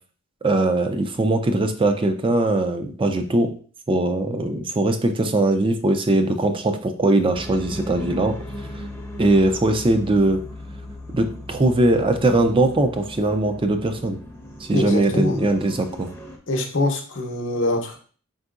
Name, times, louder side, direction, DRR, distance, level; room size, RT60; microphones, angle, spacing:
voice 1, 0.4-3.5 3.9-8.4 9.2-10.4 11.1-14.2 14.6-16.1, right 2 dB, 25° right, 7 dB, 0.4 m, -20 dB
sound 1, 7.3-16.4, left 1 dB, 15° left, 0.7 m, -37 dB
voice 2, 14.7-15.4 16.5-18.0, left 1 dB, 65° left, 4 dB, 0.8 m, -24 dB
4.4 x 3.9 x 2.4 m, 0.42 s
head